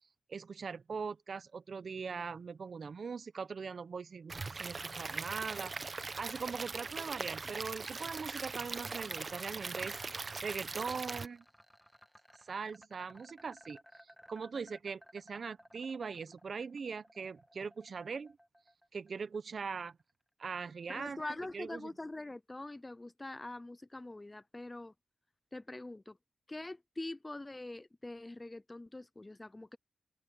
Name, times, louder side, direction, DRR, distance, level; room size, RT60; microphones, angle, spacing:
voice 1, 0.3-10.0 10.4-11.4 12.4-18.4 18.9-20.0 20.4-21.9, right 5 dB, 60° right, 0.9 m, -41 dB
Stream / Liquid, 4.3-11.3, right 4 dB, 45° right, 1.1 m, -41 dB
sound 1, 10.0-20.1, equal, ahead, 2.0 m, -60 dB
voice 2, 20.9-24.9 25.5-26.2 26.5-29.8, left 2 dB, 20° left, 0.6 m, -44 dB
open air
cardioid pair, 65°, 0 cm